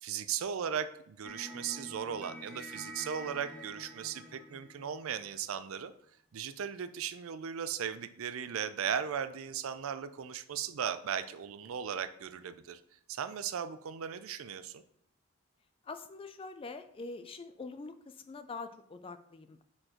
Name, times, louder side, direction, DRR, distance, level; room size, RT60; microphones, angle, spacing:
voice 1, 0.0-5.9 6.3-12.8 13.1-14.8, right 8 dB, 75° right, 12 dB, 0.4 m, -37 dB
sound 1, 1.2-5.6, right 1 dB, 5° right, 0.9 m, -47 dB
voice 2, 15.8-19.6, left 3 dB, 25° left, 10 dB, 0.3 m, -44 dB
4.4 x 4.4 x 4.9 m, 0.69 s
head